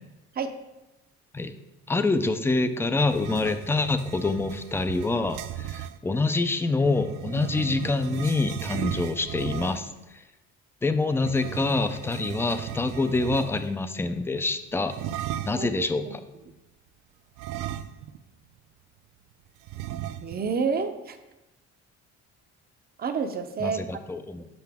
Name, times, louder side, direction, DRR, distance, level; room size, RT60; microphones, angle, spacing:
voice 1, 1.9-9.9 10.8-14.9 15.4-16.1 23.6-24.5, left 3 dB, 10° left, 10 dB, 0.3 m, -26 dB
sound 1, 3.0-6.0 6.8-10.0 11.2-13.8 14.9-15.7 17.4-18.3 18.6-18.7 19.7-20.5, right 11 dB, 80° right, 0.5 m, -36 dB
voice 2, 15.5-16.1 20.2-21.2 23.0-23.8, right 5 dB, 35° right, 8 dB, 0.6 m, -29 dB
7.8 x 5.6 x 3.5 m, 1.0 s
cardioid pair, 125°, 29 cm